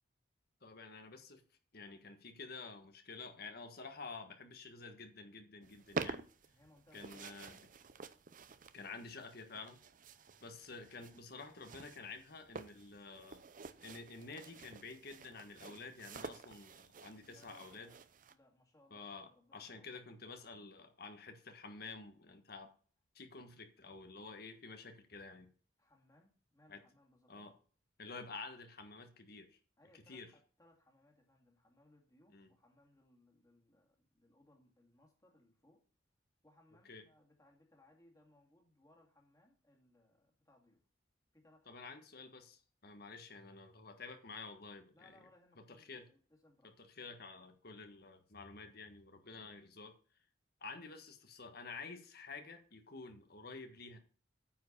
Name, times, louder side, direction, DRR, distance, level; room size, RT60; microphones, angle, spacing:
voice 1, 0.6-1.4 1.7-6.3 6.9-7.6 8.7-9.8 10.4-13.4 13.8-17.9 18.9-22.7 23.1-25.5 26.7-26.8 27.3-27.5 28.0-29.6 30.1-30.3 32.3-32.5 36.9-37.0 41.7-45.1 45.7-46.1 46.8-49.9 50.6-54.0, left 4 dB, 55° left, 1.5 m, -50 dB
sound 1, 5.6-18.3, right 4 dB, 45° right, 0.6 m, -49 dB
voice 2, 6.5-7.7 17.1-20.2 25.8-27.6 29.8-35.9 36.4-40.9 41.3-41.9 44.9-46.7, left 1 dB, 20° left, 2.3 m, -68 dB
9.2 x 4.9 x 6.6 m
head